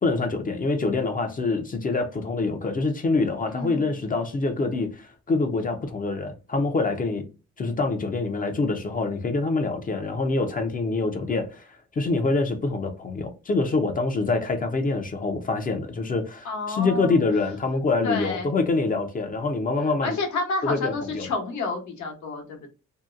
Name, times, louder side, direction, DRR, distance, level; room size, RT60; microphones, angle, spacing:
voice 1, 0.0-7.2 7.6-11.7 12.0-20.2 20.6-21.3, left 3 dB, 30° left, 0.5 m, -25 dB
voice 2, 3.5-3.9 16.4-17.2 18.0-18.5 19.8-22.7, left 3 dB, 70° left, 0.9 m, -30 dB
2.7 x 2.1 x 2.4 m
cardioid pair, 90°, 30 cm